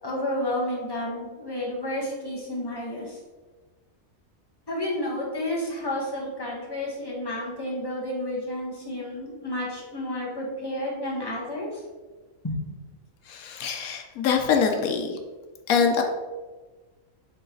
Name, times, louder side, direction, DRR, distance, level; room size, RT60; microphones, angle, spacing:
voice 1, 0.0-3.2 4.7-11.8 12.4-12.8, left 1 dB, 15° left, -4 dB, 1.6 m, -31 dB
voice 2, 13.2-15.2 15.7-16.0, left 6 dB, 85° left, 4 dB, 1.2 m, -24 dB
8.2 x 3.9 x 3.9 m, 1.3 s
omnidirectional pair, 1.4 m